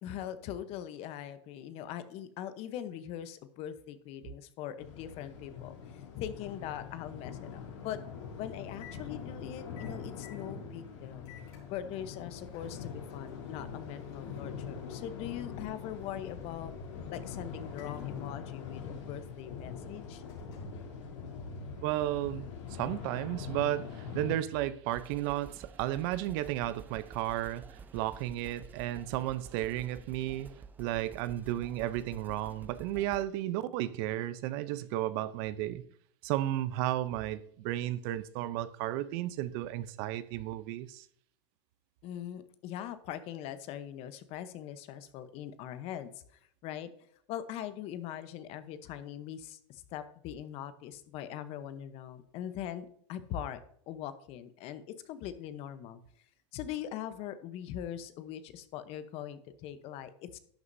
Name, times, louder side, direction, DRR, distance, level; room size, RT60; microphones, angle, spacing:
voice 1, 0.0-8.0 8.4-11.3 11.7-16.7 17.1-20.2 42.0-46.9 47.3-53.6 53.9-56.0 56.5-60.4, left 10 dB, 40° left, 0.9 m, -41 dB
sound 1, 4.8-24.4, left 6 dB, 90° left, 3.3 m, -43 dB
Microwave oven, 6.1-21.8, left 8 dB, 55° left, 4.3 m, -57 dB
voice 2, 21.8-22.4 22.7-35.8 36.2-41.1, right 14 dB, 50° right, 0.7 m, -33 dB
sound 2, 24.9-33.2, right 5 dB, 10° right, 0.6 m, -50 dB
11.5 x 9.4 x 2.7 m
supercardioid pair, 140°, 15 cm